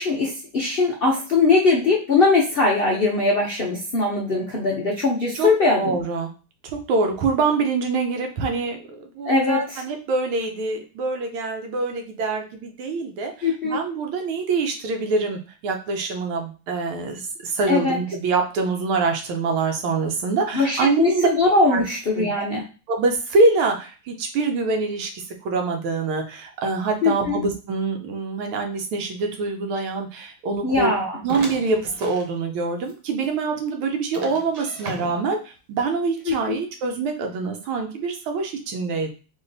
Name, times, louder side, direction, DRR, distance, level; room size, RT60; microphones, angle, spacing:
voice 1, 0.0-6.0 9.3-9.8 13.4-13.8 17.7-18.0 20.5-22.7 27.0-27.4 30.6-31.2 36.3-36.6, left 3 dB, 85° left, -2 dB, 0.5 m, -21 dB
voice 2, 5.8-6.3 6.6-21.3 21.7-21.8 22.1-22.4 22.9-31.0 31.2-39.1, right 3 dB, 85° right, 4 dB, 1.7 m, -25 dB
sound 1, 31.3-32.3 32.8-32.9 33.2-33.3 34.1-35.4, right 2 dB, 60° right, 1.5 m, -37 dB
4.1 x 3.1 x 3.9 m, 0.35 s
omnidirectional pair, 2.2 m